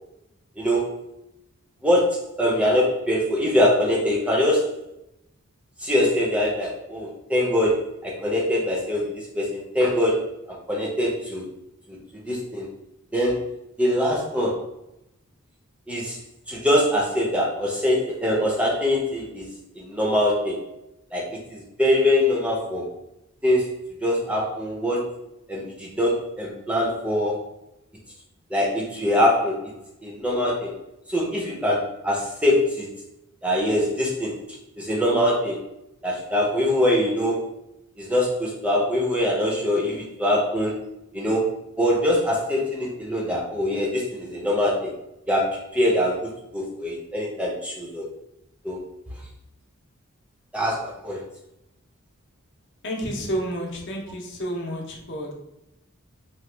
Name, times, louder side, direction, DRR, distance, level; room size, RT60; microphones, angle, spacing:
voice 1, 0.6-1.0 1.8-4.7 5.8-10.3 10.7-11.4 11.9-12.7 13.1-13.5 13.8-14.6 15.9-16.2 16.5-19.5 19.7-20.6 21.1-22.9 23.4-25.1 25.5-27.4 28.5-29.7 30.0-30.8 31.1-32.9 33.4-34.4 34.8-35.6 36.0-37.4 38.0-40.8 41.1-44.9 45.3-48.0 48.6-48.8 50.5-51.2, left 1 dB, 5° right, -3 dB, 0.5 m, -23 dB
voice 2, 52.8-55.3, equal, 55° left, 0 dB, 0.7 m, -30 dB
2.9 x 2.2 x 3.2 m, 0.87 s
head